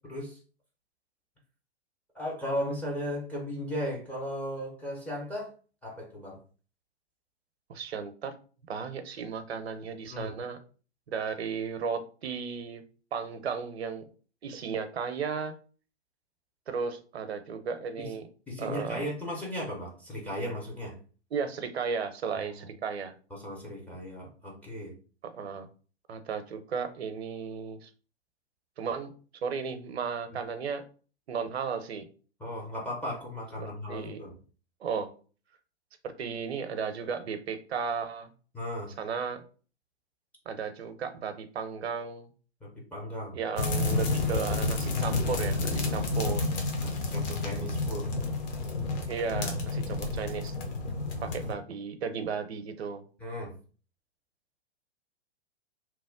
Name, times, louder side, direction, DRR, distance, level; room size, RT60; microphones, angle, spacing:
voice 1, 0.0-0.4 2.1-5.5 5.8-6.4 10.1-10.4 18.0-18.1 18.5-21.0 22.4-22.5 23.3-25.0 30.3-30.4 32.4-34.4 38.5-38.9 42.6-43.4 46.8-48.1 50.0-50.2 53.2-53.6, equal, 5° left, -3 dB, 0.4 m, -36 dB
voice 2, 7.7-8.3 8.7-10.6 11.1-12.8 13.1-14.1 14.4-15.5 16.7-18.3 18.6-19.1 21.3-23.1 25.2-25.7 26.1-27.9 28.8-29.1 29.4-30.8 31.3-32.1 33.6-34.2 34.8-35.1 36.0-38.3 39.0-39.4 40.5-42.3 43.3-46.5 49.1-50.5 51.2-53.0, right 6 dB, 70° right, 9 dB, 0.6 m, -34 dB
sound 1, 43.6-51.6, left 3 dB, 40° left, 0.8 m, -30 dB
2.9 x 2.0 x 3.5 m, 0.39 s
figure-of-eight pair, 110°, 33 cm